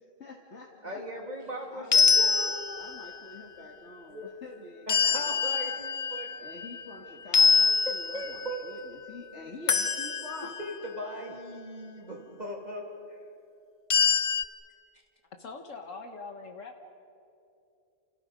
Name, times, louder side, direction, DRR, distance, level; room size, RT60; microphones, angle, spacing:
voice 1, 0.2-1.0 1.7-2.5 2.8-5.3 6.4-10.5 11.2-11.3, left 2 dB, 60° left, -1 dB, 2.2 m, -46 dB
voice 2, 0.8-2.8 4.1-4.3 4.9-6.3 8.1-8.8 10.6-12.8 13.1-13.2, equal, 35° right, 0 dB, 3.2 m, -38 dB
sound 1, 1.9-3.1 4.9-6.9 7.3-8.6 9.7-10.7 13.9-14.4, left 5 dB, 45° left, 0.4 m, -25 dB
voice 3, 15.4-16.8, left 4 dB, 80° left, 4 dB, 1.7 m, -42 dB
29.0 x 28.5 x 5.2 m, 2.7 s
omnidirectional pair, 1.3 m